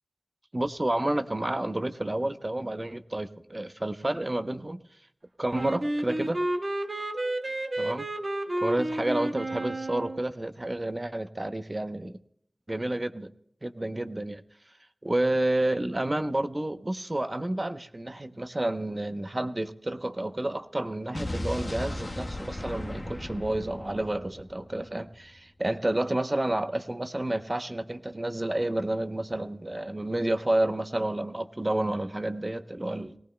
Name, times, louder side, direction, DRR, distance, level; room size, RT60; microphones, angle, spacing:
voice 1, 0.5-4.8 5.4-6.4 7.8-8.0 8.6-12.2 12.7-13.3 13.6-14.4 15.0-33.2, right 1 dB, 35° right, 9 dB, 0.8 m, -30 dB
Wind instrument woodwind instrument, 5.5-10.3, right 1 dB, 50° right, 1.2 m, -31 dB
Explosion, 21.1-25.2, left 1 dB, 45° left, 1.2 m, -36 dB
21.0 x 18.0 x 2.2 m, 0.73 s
wide cardioid pair, 50°, 0 cm